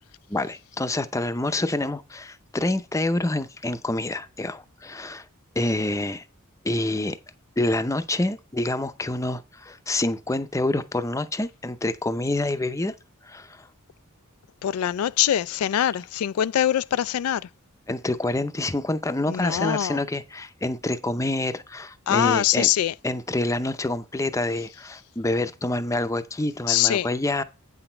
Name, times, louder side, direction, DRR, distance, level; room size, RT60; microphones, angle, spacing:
voice 1, 0.3-5.3 5.6-6.2 6.6-7.2 7.6-12.9 13.2-13.7 17.9-22.7 23.0-27.4, left 2 dB, 15° left, 0.6 m, -27 dB
voice 2, 14.6-17.5 19.3-20.0 22.1-22.9 26.7-27.1, left 11 dB, 80° left, 0.3 m, -23 dB
8.9 x 6.0 x 4.4 m
head